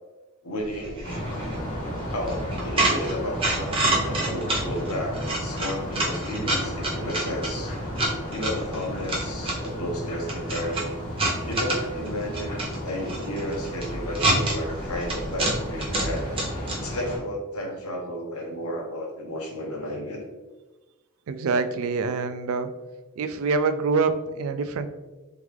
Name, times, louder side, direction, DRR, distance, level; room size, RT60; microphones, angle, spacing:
voice 1, 0.4-1.1 2.1-7.7 8.3-11.0 11.4-12.6 12.8-16.3 16.7-20.2, equal, 90° left, 1 dB, 1.0 m, -32 dB
sound 1, 0.6-16.8, right 2 dB, 25° right, 0.9 m, -29 dB
sound 2, 1.0-17.2, equal, 35° left, 1.4 m, -33 dB
voice 2, 21.3-22.7 23.2-24.9, right 4 dB, 75° right, 10 dB, 0.4 m, -25 dB
3.6 x 3.5 x 3.2 m, 1.2 s
head